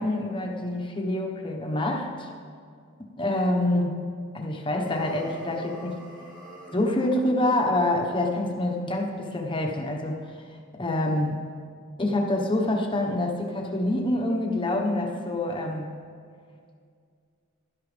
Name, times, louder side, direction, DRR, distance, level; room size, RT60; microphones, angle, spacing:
voice 1, 0.0-2.3 3.2-4.0 4.3-6.0 6.7-10.3 10.7-11.4 12.0-16.0, left 1 dB, 25° left, 1 dB, 1.2 m, -26 dB
sound 1, 4.7-7.0, right 1 dB, 20° right, 2.0 m, -46 dB
16.0 x 12.0 x 3.4 m, 2.2 s
head